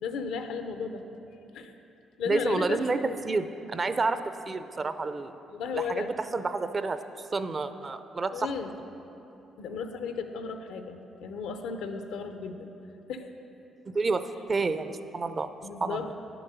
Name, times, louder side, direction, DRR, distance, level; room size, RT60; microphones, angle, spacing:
voice 1, 0.0-1.0 1.5-1.7 2.2-3.2 5.5-6.1 8.3-8.7 9.6-12.8 13.1-13.3 15.6-16.1, left 5 dB, 90° left, 7 dB, 0.7 m, -34 dB
voice 2, 2.3-5.3 5.8-7.0 7.3-8.5 13.9-15.5 15.8-16.0, right 3 dB, 35° right, 11 dB, 0.5 m, -29 dB
9.9 x 7.0 x 6.9 m, 3.0 s
cardioid pair, 90°, 0 cm